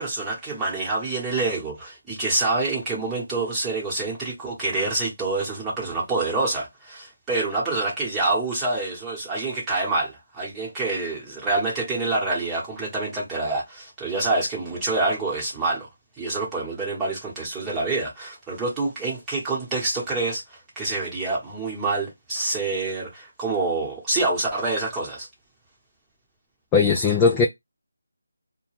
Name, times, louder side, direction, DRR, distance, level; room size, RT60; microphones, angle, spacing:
voice 1, 0.0-15.9 16.2-25.3, right 3 dB, 10° right, 1.0 m, -27 dB
voice 2, 26.7-27.5, left 5 dB, 10° left, 0.3 m, -18 dB
2.2 x 2.2 x 3.1 m
figure-of-eight pair, 165°, 0 cm